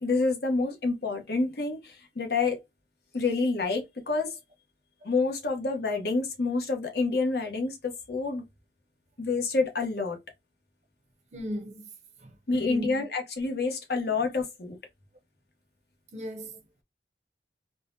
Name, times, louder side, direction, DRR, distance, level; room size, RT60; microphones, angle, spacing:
voice 1, 0.0-2.6 3.1-4.4 5.0-8.4 9.2-10.2 12.5-14.8, left 3 dB, 65° left, 0.9 m, -28 dB
voice 2, 11.3-11.9 12.2-13.1 16.1-16.6, left 1 dB, 40° right, 0.6 m, -37 dB
3.7 x 2.0 x 2.6 m
head